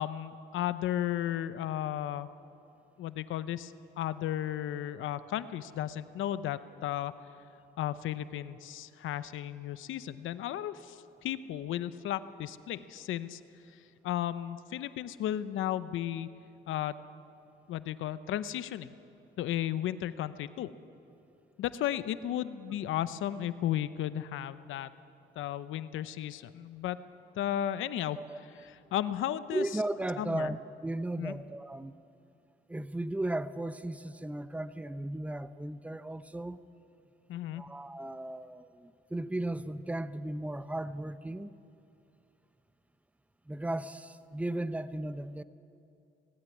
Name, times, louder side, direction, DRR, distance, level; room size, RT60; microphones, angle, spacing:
voice 1, 0.0-2.3 3.0-7.1 7.8-13.4 14.0-16.3 16.7-17.0 17.7-18.9 19.4-20.7 21.6-24.9 25.4-27.0 27.3-29.7 30.2-30.6 31.2-31.3 37.3-37.6, left 11 dB, 80° left, 14 dB, 0.8 m, -34 dB
voice 2, 28.2-28.7 29.5-30.6 30.8-32.0 32.7-36.6 37.5-41.5 43.5-45.4, right 1 dB, 5° right, 13 dB, 0.7 m, -36 dB
18.5 x 16.5 x 9.7 m, 2.7 s
cardioid pair, 90°, 20 cm